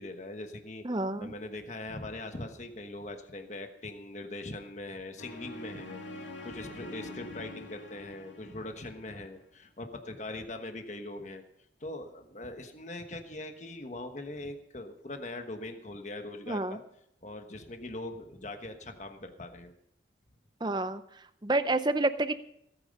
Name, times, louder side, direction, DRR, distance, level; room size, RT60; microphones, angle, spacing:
voice 1, 0.0-0.8 1.2-11.4 11.8-16.8 17.2-19.7, left 2 dB, 40° left, 6 dB, 1.2 m, -41 dB
voice 2, 0.8-1.3 16.5-16.8 20.6-21.0 21.4-22.3, right 2 dB, 25° right, 12 dB, 0.6 m, -28 dB
sound 1, 5.2-9.4, left 1 dB, 85° left, 2.1 m, -45 dB
17.5 x 9.3 x 5.4 m, 0.75 s
head